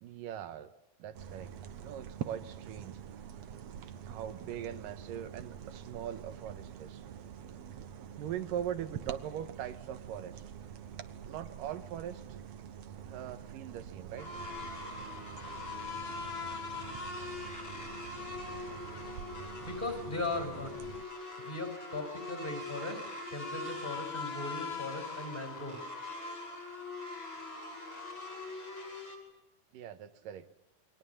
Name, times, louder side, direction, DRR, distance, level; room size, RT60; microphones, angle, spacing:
voice 1, 0.0-0.7 1.0-1.5 1.8-3.0 4.1-7.0 8.2-10.4 11.3-12.4 13.0-14.3 29.7-30.5, right 10 dB, 85° right, 10 dB, 3.0 m, -41 dB
sound 1, 1.1-21.0, right 9 dB, 60° right, 2.1 m, -46 dB
sound 2, 14.2-29.2, left 3 dB, 35° left, 6.4 m, -42 dB
voice 2, 19.6-20.7 21.4-25.8, left 2 dB, 15° left, 6 dB, 5.9 m, -38 dB
29.0 x 23.0 x 7.2 m, 0.91 s
omnidirectional pair, 3.8 m